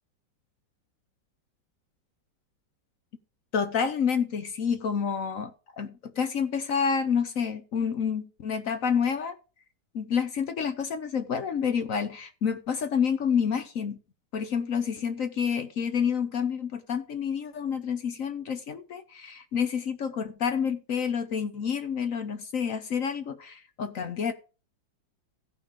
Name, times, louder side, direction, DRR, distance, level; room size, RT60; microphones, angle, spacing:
voice 1, 3.5-9.4 9.9-14.0 14.3-24.3, left 7 dB, 55° left, 1.0 m, -29 dB
16.5 x 5.5 x 3.6 m
omnidirectional pair, 2.1 m